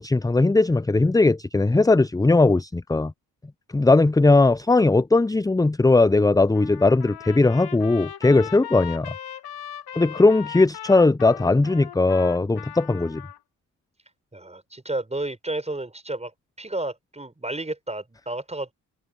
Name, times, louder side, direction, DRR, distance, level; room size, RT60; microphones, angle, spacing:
voice 1, 0.0-3.1 3.7-9.1 10.0-13.2, left 3 dB, 10° left, 0.7 m, -19 dB
Trumpet, 6.5-13.4, left 11 dB, 55° left, 3.0 m, -39 dB
voice 2, 14.3-16.3 16.6-18.7, right 2 dB, 15° right, 5.8 m, -31 dB
figure-of-eight pair, 45°, 46 cm